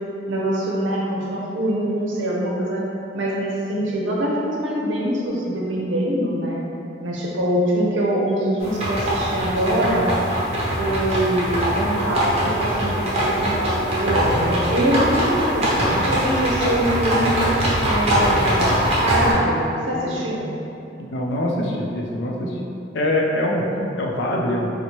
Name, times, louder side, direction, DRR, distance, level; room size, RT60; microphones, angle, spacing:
voice 1, 0.3-2.8 3.1-6.6 7.0-10.1 10.8-17.3 17.8-18.8 19.0-20.5 23.7-23.9, right 1 dB, 90° right, -4 dB, 0.6 m, -23 dB
sound 1, 8.6-19.3, equal, 35° right, 0.8 m, -22 dB
voice 2, 21.0-22.6 22.9-23.7 24.0-24.7, left 1 dB, 65° left, -1 dB, 0.5 m, -23 dB
4.3 x 2.1 x 2.9 m, 2.7 s
head